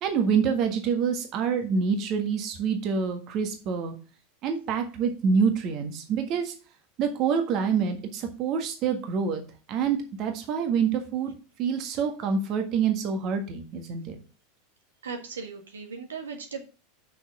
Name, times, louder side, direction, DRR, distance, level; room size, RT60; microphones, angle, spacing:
voice 1, 0.0-3.9 4.4-6.5 7.0-9.4 9.7-11.3 11.6-14.2, right 6 dB, 45° right, 5 dB, 1.6 m, -26 dB
voice 2, 15.0-16.6, right 5 dB, 75° right, 3 dB, 1.7 m, -37 dB
6.4 x 6.2 x 6.1 m, 0.34 s
figure-of-eight pair, 85°, 0 cm